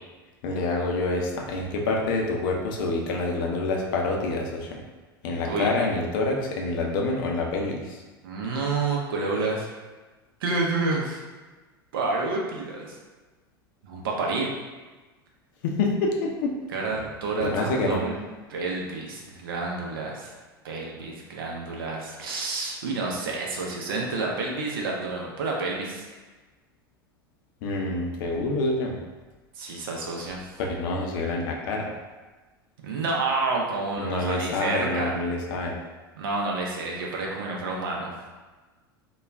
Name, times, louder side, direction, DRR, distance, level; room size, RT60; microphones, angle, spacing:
voice 1, 0.4-4.8 5.2-8.0 15.6-16.6 17.4-18.0 27.6-29.0 30.7-31.9 34.0-35.8, left 2 dB, 60° left, 1 dB, 0.5 m, -27 dB
voice 2, 8.2-9.7 10.4-11.2 11.9-13.0 13.8-14.5 16.7-18.2 18.5-20.3 20.6-26.1 29.6-30.6 32.8-35.1 36.1-38.1, right 3 dB, 70° right, -2 dB, 0.6 m, -29 dB
2.3 x 2.1 x 3.4 m, 1.3 s
figure-of-eight pair, 85°, 12 cm